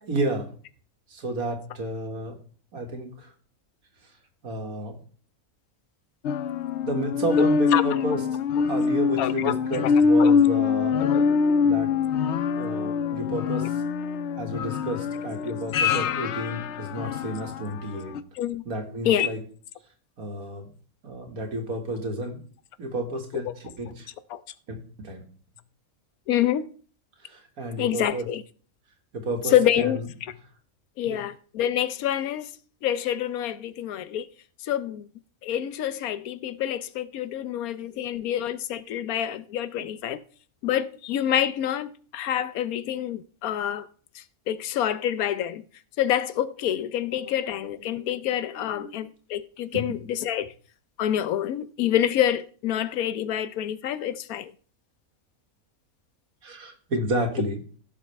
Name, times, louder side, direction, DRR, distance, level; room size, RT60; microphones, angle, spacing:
voice 1, 0.0-0.5 1.1-2.4 2.7-3.3 4.4-5.0 6.8-8.2 8.7-11.0 11.6-11.9 12.6-13.6 14.3-18.1 18.7-19.4 20.2-20.7 21.0-22.4 22.8-23.5 23.8-24.1 25.0-25.2 27.3-28.3 29.1-29.9 31.0-31.2 37.8-37.9 47.9-48.0 48.6-49.0 49.7-49.9 56.4-57.6, right 1 dB, 90° right, 2.2 m, -31 dB
sound 1, 6.2-17.7 18.1-18.2, left 5 dB, 65° left, 0.7 m, -24 dB
voice 2, 7.7-8.2 9.2-9.6 9.8-9.9 10.2-10.3 11.0-11.2 13.6-13.7 15.1-15.5 18.3-18.6 19.0-19.3 23.3-23.5 24.3-24.4 26.3-26.7 27.8-28.4 29.4-30.3 31.0-32.5 32.8-34.3 34.6-35.1 35.4-40.2 40.6-43.9 44.1-45.6 46.0-50.5 51.0-54.5, left 11 dB, 85° left, 1.1 m, -27 dB
16.0 x 6.5 x 3.3 m
omnidirectional pair, 1.5 m